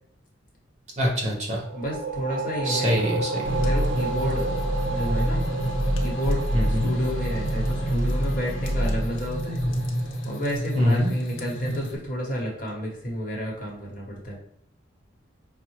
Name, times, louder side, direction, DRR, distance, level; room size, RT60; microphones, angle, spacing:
voice 1, 1.0-1.6 2.6-3.4 6.5-6.9 10.8-11.1, equal, 35° right, -2 dB, 1.0 m, -23 dB
sound 1, 1.6-11.0, right 3 dB, 60° right, 0.4 m, -34 dB
voice 2, 1.7-3.2 3.5-4.5 4.9-5.4 6.0-9.6 10.2-14.4, equal, 45° left, -2 dB, 1.0 m, -30 dB
sound 2, 3.4-12.0, equal, 75° left, 0.6 m, -27 dB
5.3 x 2.0 x 3.0 m, 0.74 s
head